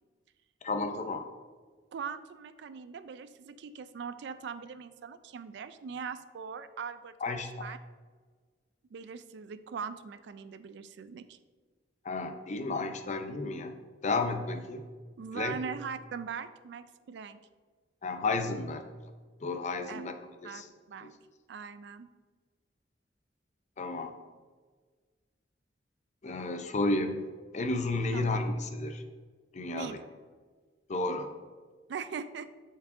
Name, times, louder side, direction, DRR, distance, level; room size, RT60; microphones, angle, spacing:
voice 1, 0.6-1.2 7.2-7.5 12.0-13.7 14.0-14.8 15.3-15.6 18.0-18.8 19.4-20.1 20.4-20.7 21.0-21.1 23.8-24.1 26.2-27.3 27.5-29.0 29.5-30.0 30.9-31.3, left 3 dB, 40° left, 6 dB, 0.5 m, -32 dB
voice 2, 1.9-7.8 8.9-11.4 15.2-17.4 19.9-20.0 20.4-20.6 20.9-21.1 21.5-22.1 28.1-28.5 29.7-30.0 31.9-32.5, right 6 dB, 70° right, 12 dB, 0.3 m, -41 dB
8.1 x 4.6 x 2.6 m, 1.5 s
head